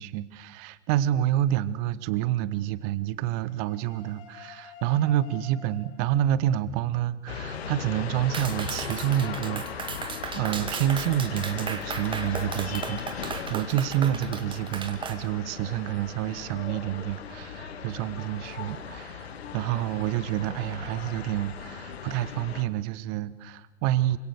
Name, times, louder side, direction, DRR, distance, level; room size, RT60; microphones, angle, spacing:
voice 1, 0.0-10.0 10.3-24.2, right 12 dB, 30° right, 17 dB, 1.3 m, -28 dB
sound 1, 3.3-6.3 8.0-10.8 12.3-13.3, left 8 dB, 30° left, 5.2 m, -49 dB
sound 2, 7.3-22.6, left 7 dB, 60° left, 2.6 m, -38 dB
Clapping, 8.3-15.2, right 6 dB, 15° right, 2.1 m, -36 dB
27.0 x 25.5 x 6.6 m, 1.2 s
figure-of-eight pair, 105°, 36 cm